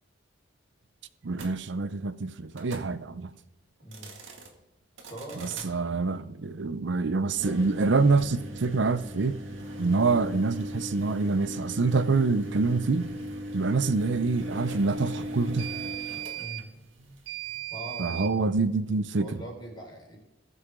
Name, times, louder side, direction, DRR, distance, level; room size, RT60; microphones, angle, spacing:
voice 1, 1.2-3.3 5.4-9.4 9.8-13.1 13.5-15.7 18.0-19.3, right 3 dB, 65° right, 0.6 m, -26 dB
sound 1, 1.3-1.5 2.5-2.9 3.8-4.5 5.0-5.7 7.3-18.3, right 2 dB, 90° right, 1.9 m, -38 dB
voice 2, 5.1-5.7 16.4-16.6 17.7-18.3 19.2-20.2, right 1 dB, 25° left, 4.2 m, -41 dB
20.0 x 6.9 x 3.7 m
head